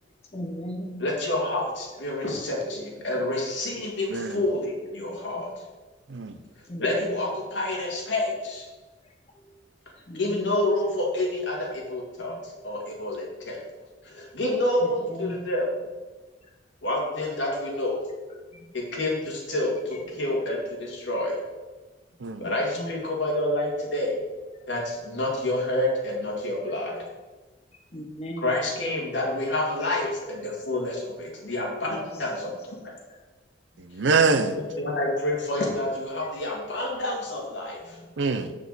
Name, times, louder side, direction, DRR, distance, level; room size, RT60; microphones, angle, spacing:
voice 1, 0.3-1.0 2.6-2.8 5.1-5.5 6.7-7.2 10.1-10.6 12.3-12.4 14.2-14.3 15.1-15.5 18.5-18.7 19.9-20.0 22.4-23.0 27.0-27.1 27.9-28.6 31.8-32.1 33.8-33.9 37.8-38.2, equal, 35° left, 0.9 m, -38 dB
voice 2, 1.0-5.5 6.8-8.7 10.1-13.6 14.0-15.7 16.8-18.1 18.7-21.4 22.4-24.2 24.7-26.9 28.4-32.5 34.7-38.0, left 1 dB, 75° left, 2.1 m, -28 dB
voice 3, 4.1-4.4 6.1-6.4 22.2-22.5 33.8-34.6 38.2-38.5, right 4 dB, 70° right, 0.6 m, -24 dB
7.2 x 6.1 x 4.1 m
head